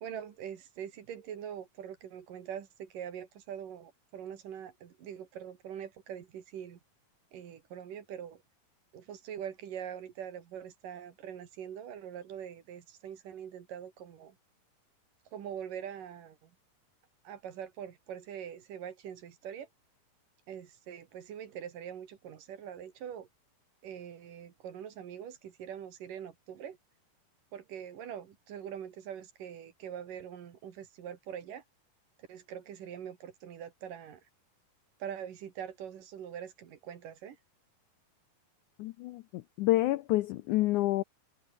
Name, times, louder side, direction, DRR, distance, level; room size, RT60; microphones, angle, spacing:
voice 1, 0.0-6.8 7.3-8.4 8.9-14.4 15.3-16.5 17.3-19.7 20.5-23.3 23.8-26.8 27.5-31.6 32.3-34.2 35.0-37.4, right 9 dB, 65° right, 3.6 m, -43 dB
voice 2, 38.8-41.0, left 17 dB, 90° left, 1.7 m, -28 dB
omnidirectional pair, 4.2 m